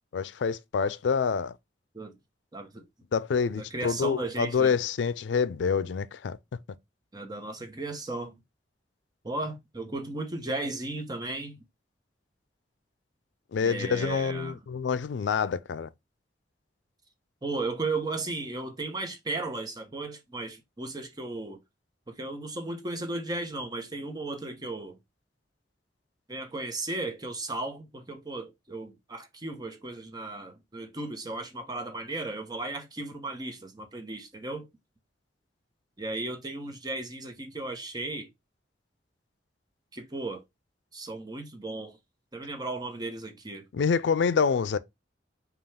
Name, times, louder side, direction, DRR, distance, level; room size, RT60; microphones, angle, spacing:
voice 1, 0.1-1.5 3.1-6.4 13.5-15.9 43.7-44.8, left 6 dB, 90° left, 0.4 m, -27 dB
voice 2, 2.5-2.8 3.6-4.8 7.1-8.3 9.2-11.6 13.6-14.6 17.4-21.6 22.1-25.0 26.3-34.7 36.0-38.3 39.9-40.4 40.9-42.0 42.3-43.6, right 2 dB, 25° right, 0.9 m, -35 dB
5.4 x 2.3 x 3.4 m
head